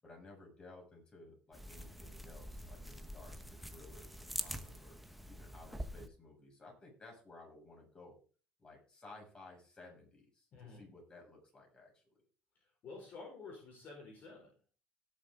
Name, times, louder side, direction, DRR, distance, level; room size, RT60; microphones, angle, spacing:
voice 1, 0.0-8.2 8.6-12.2, left 2 dB, 25° left, 0 dB, 7.1 m, -57 dB
sound 1, 1.5-6.1, equal, ahead, 1.1 m, -45 dB
voice 2, 10.5-10.9 12.8-14.5, left 4 dB, 45° left, 0 dB, 4.8 m, -50 dB
18.0 x 7.3 x 3.8 m, 0.38 s
cardioid pair, 120°, 4 cm